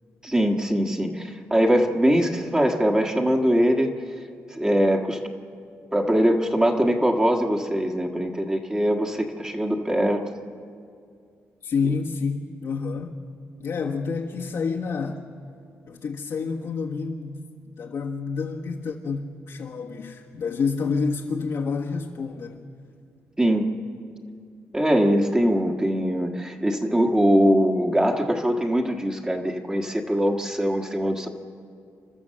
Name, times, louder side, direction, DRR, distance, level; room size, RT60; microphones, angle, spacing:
voice 1, 0.2-3.9 4.5-5.2 5.9-10.2 23.4-23.7 24.7-31.3, equal, 15° right, 2 dB, 1.5 m, -22 dB
voice 2, 11.6-13.1 13.6-15.2 15.9-17.4 17.8-22.7, left 5 dB, 70° left, -2 dB, 1.5 m, -28 dB
29.0 x 12.5 x 7.6 m, 2.3 s
cardioid pair, 110°, 5 cm